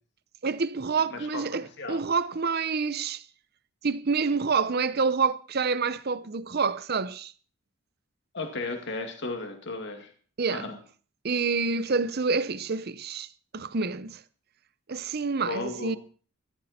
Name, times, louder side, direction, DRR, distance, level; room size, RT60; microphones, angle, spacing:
voice 1, 0.4-3.2 3.8-7.3 10.4-10.7 11.2-13.3 13.5-14.2 14.9-16.0, right 4 dB, 50° right, 0.7 m, -27 dB
voice 2, 1.1-2.0 8.3-10.1 10.5-10.8 15.4-16.0, left 3 dB, 55° left, 2.2 m, -35 dB
15.0 x 12.0 x 4.2 m
head